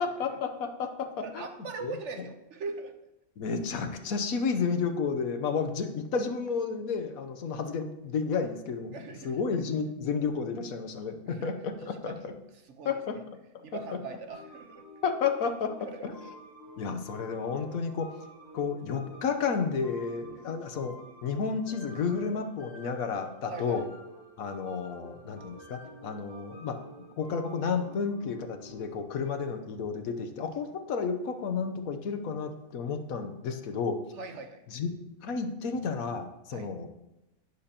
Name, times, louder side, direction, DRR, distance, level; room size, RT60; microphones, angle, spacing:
voice 1, 0.0-1.5 1.8-1.9 3.4-9.0 9.2-12.3 12.8-13.2 15.0-15.8 16.0-16.1 16.8-18.1 18.5-20.9 21.2-23.9 24.4-26.8 27.2-34.0 34.7-34.9 35.2-36.9, left 5 dB, 75° left, 7 dB, 1.3 m, -31 dB
voice 2, 1.2-2.9 8.9-9.4 11.3-11.5 11.8-12.1 12.6-12.9 13.6-14.8 20.3-20.5 23.5-23.8 34.2-34.6 36.5-36.7, right 4 dB, 55° right, 6 dB, 1.2 m, -41 dB
sound 1, 14.3-29.0, equal, 30° right, 4.1 m, -50 dB
11.5 x 9.9 x 2.9 m, 0.92 s
omnidirectional pair, 1.5 m